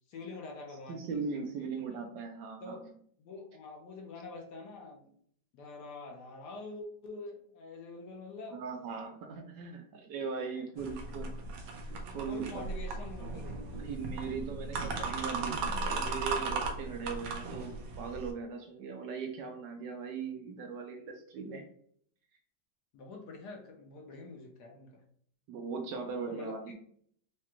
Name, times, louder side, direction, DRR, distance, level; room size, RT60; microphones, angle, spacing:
voice 1, 0.1-1.9 2.6-2.9 3.2-5.1 5.5-8.6 10.4-10.9 12.3-13.5 22.9-25.0 26.2-26.7, left 3 dB, 70° left, 1 dB, 1.1 m, -46 dB
voice 2, 0.9-2.7 8.5-11.3 12.1-12.5 13.8-21.7 25.5-26.6, right 5 dB, 75° right, 4 dB, 1.1 m, -39 dB
sound 1, 10.8-18.3, right 3 dB, 90° right, 1.5 m, -37 dB
4.9 x 2.2 x 2.9 m, 0.62 s
omnidirectional pair, 2.1 m